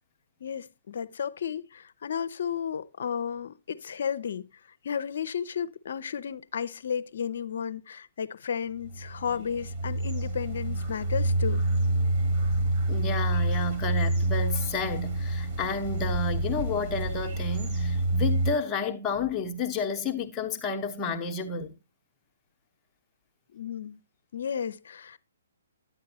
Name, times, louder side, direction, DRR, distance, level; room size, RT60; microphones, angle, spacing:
voice 1, 0.4-4.5 4.8-11.6 23.5-24.0 24.3-25.2, left 7 dB, 65° left, 0.6 m, -33 dB
sound 1, 8.8-18.5, right 1 dB, 35° right, 1.9 m, -28 dB
voice 2, 12.9-21.7, left 4 dB, 20° left, 0.9 m, -31 dB
10.0 x 8.6 x 2.7 m
hypercardioid pair, 140°, 0 cm